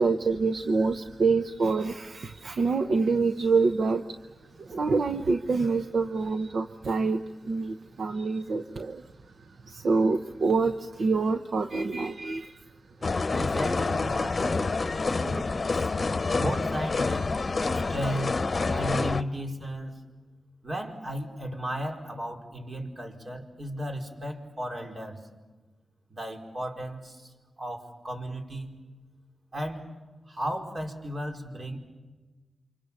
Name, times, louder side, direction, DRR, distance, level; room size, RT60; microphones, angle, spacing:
voice 1, 0.0-4.0 4.6-9.1 9.4-12.7, right 4 dB, 70° right, 7 dB, 1.0 m, -26 dB
sound 1, 13.0-19.2, left 3 dB, 45° left, 0.9 m, -27 dB
voice 2, 13.3-14.7 15.0-15.9 16.4-17.4 17.7-18.4 18.7-20.0 20.6-25.2 26.1-28.7 29.5-29.8 30.3-31.8, equal, 45° right, 1 dB, 4.9 m, -35 dB
29.0 x 26.0 x 7.2 m, 1.2 s
cardioid pair, 60°, 0 cm